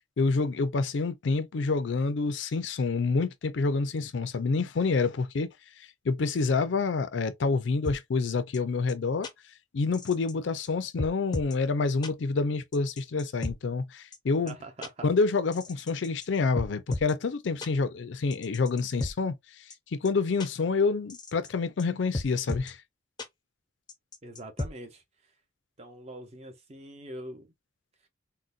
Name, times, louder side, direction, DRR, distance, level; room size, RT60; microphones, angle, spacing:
voice 1, 0.2-5.5 6.0-9.3 9.7-14.6 15.0-19.6 19.9-22.8, left 4 dB, 80° left, 0.5 m, -27 dB
sound 1, 7.8-8.0 8.5-8.6 8.9-9.0 9.2-9.3 9.9-10.3 10.6-10.7 11.0-11.5 12.0-12.1 12.7-13.5 14.1-14.2 14.5-14.6 14.8-14.9 15.5-16.3 16.6-17.1 17.6-17.7 18.3-19.1 19.7-19.8 20.0-20.1 20.4-20.5 21.1-21.5 21.8-21.9 22.1-22.7 23.2-23.3 23.9-24.7, left 2 dB, 25° left, 0.5 m, -34 dB
voice 2, 14.5-15.1 24.2-25.0 25.8-27.5, right 1 dB, 35° right, 0.7 m, -43 dB
3.8 x 2.1 x 2.4 m
head